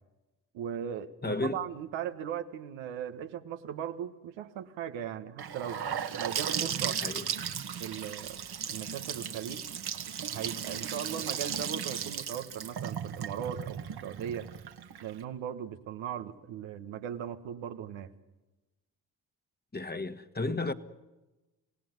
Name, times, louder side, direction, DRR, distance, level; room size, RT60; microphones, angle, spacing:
voice 1, 0.5-5.8 6.2-7.0 7.8-9.7 10.3-14.5 15.0-18.1, right 9 dB, 75° right, 1.6 m, -38 dB
voice 2, 1.2-1.6 6.8-7.3 19.7-20.7, left 2 dB, 20° left, 1.8 m, -33 dB
Gurgling / Sink (filling or washing) / Bathtub (filling or washing), 5.4-15.2, right 8 dB, 55° right, 1.8 m, -36 dB
27.5 x 17.5 x 9.6 m
hypercardioid pair, 45°, 46 cm